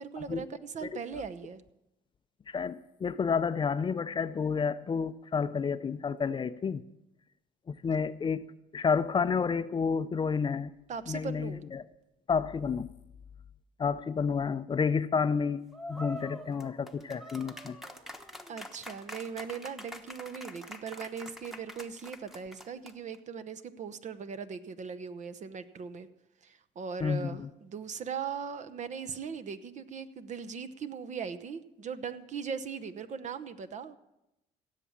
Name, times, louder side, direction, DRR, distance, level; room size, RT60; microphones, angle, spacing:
voice 1, 0.0-1.6 10.9-11.6 18.5-26.1 26.4-33.9, right 6 dB, 45° right, 10 dB, 0.9 m, -39 dB
voice 2, 2.5-6.8 7.7-8.5 8.7-10.7 11.1-11.8 12.3-12.9 13.8-15.6 15.9-17.8 27.0-27.5, left 5 dB, 30° left, 13 dB, 0.5 m, -30 dB
sound 1, 15.7-23.2, left 1 dB, ahead, 1.2 m, -45 dB
16.5 x 7.4 x 7.2 m, 0.91 s
cardioid pair, 95°, 17 cm